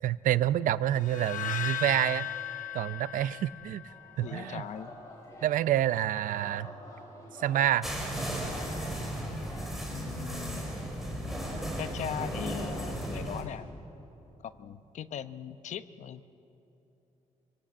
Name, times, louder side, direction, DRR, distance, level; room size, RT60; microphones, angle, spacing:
voice 1, 0.0-2.3 2.7-3.8 4.2-4.6 5.4-6.7 7.4-7.9, right 12 dB, 85° right, 16 dB, 0.6 m, -28 dB
sound 1, 1.0-4.2, left 9 dB, 80° left, 1.2 m, -36 dB
Singing, 3.9-10.3, left 1 dB, 25° left, 6.3 m, -48 dB
voice 2, 4.2-5.0 9.9-10.7 11.8-13.7 14.4-16.2, left 9 dB, 60° left, 12 dB, 0.8 m, -39 dB
sound 2, 7.8-13.4, equal, ahead, 3.9 m, -35 dB
25.0 x 23.0 x 8.8 m, 3.0 s
wide cardioid pair, 175°, 13 cm